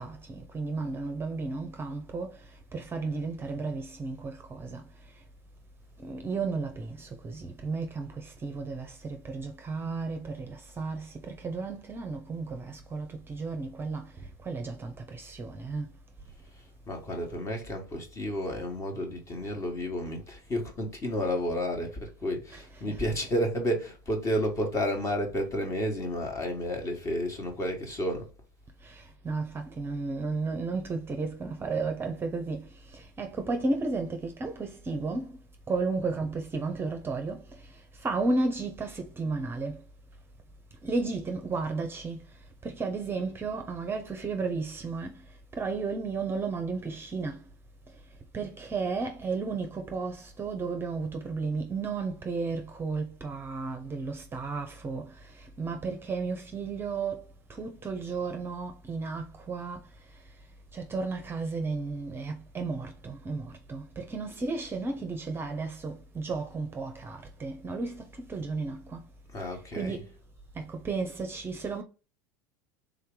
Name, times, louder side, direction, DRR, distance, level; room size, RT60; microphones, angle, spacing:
voice 1, 0.0-2.3 2.7-4.8 6.0-8.1 8.4-11.1 11.4-14.0 14.5-15.8 22.5-22.6 22.9-23.0 29.2-32.6 33.2-35.3 35.7-37.4 38.0-39.8 40.8-42.2 42.6-45.1 45.6-47.4 48.3-55.1 55.6-57.2 57.6-59.8 60.7-68.0 68.3-69.0 69.8-70.1 70.6-71.8, right 3 dB, 20° right, 0.7 m, -33 dB
voice 2, 16.9-28.3 69.3-70.0, equal, 30° left, 1.5 m, -31 dB
3.6 x 2.8 x 3.7 m
hypercardioid pair, 85°, 10 cm